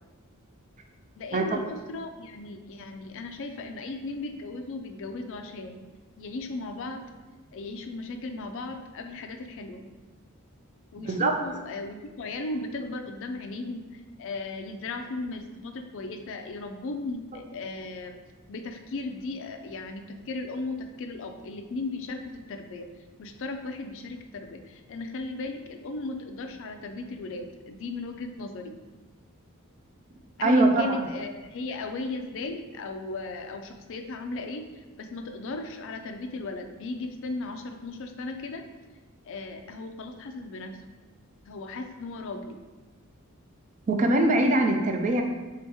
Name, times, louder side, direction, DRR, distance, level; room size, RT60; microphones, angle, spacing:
voice 1, 1.2-5.8 6.2-7.0 7.5-9.8 10.9-18.2 18.5-22.9 23.2-28.8 30.4-38.6 39.2-40.8 41.5-42.6, left 3 dB, 60° left, 5 dB, 0.4 m, -36 dB
voice 2, 11.0-11.3 30.4-31.0 43.9-45.2, right 1 dB, 35° right, 4 dB, 0.4 m, -22 dB
3.4 x 2.9 x 4.6 m, 1.2 s
head